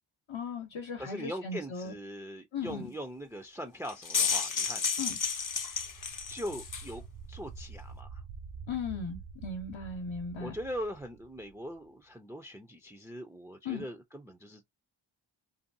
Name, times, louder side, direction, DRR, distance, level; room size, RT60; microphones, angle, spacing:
voice 1, 0.3-1.9 2.5-2.9 5.0-5.2 8.7-10.6 13.6-13.9, left 5 dB, 75° left, 0.8 m, -37 dB
voice 2, 1.0-4.8 6.3-8.2 10.4-14.7, equal, 5° right, 0.4 m, -41 dB
sound 1, 3.8-6.9, left 6 dB, 45° left, 0.6 m, -31 dB
sound 2, 5.1-11.9, right 5 dB, 70° right, 0.5 m, -48 dB
2.7 x 2.2 x 2.6 m
wide cardioid pair, 45°, 46 cm